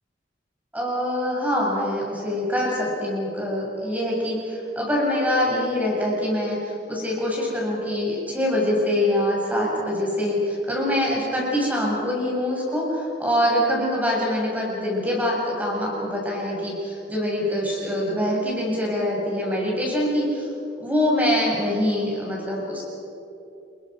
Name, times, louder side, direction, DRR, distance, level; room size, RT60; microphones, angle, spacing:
voice 1, 0.7-20.5 20.8-22.8, left 1 dB, 10° right, -3 dB, 7.4 m, -24 dB
29.0 x 22.0 x 6.2 m, 2.8 s
head